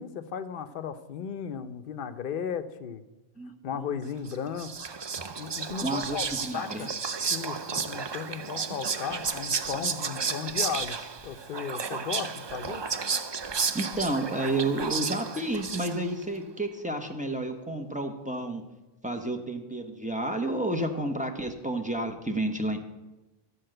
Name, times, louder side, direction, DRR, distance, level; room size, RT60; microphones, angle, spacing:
voice 1, 0.0-3.0 3.6-4.7 5.4-6.3 6.5-6.9 7.3-11.0 11.2-12.9, left 7 dB, 60° left, 9 dB, 0.8 m, -35 dB
voice 2, 3.4-3.9 5.8-6.9 13.7-18.6 19.0-22.8, right 1 dB, 10° right, 4 dB, 1.0 m, -31 dB
Whispering, 4.3-16.2, right 5 dB, 40° right, 0.4 m, -32 dB
13.0 x 4.7 x 7.7 m, 1.1 s
omnidirectional pair, 1.0 m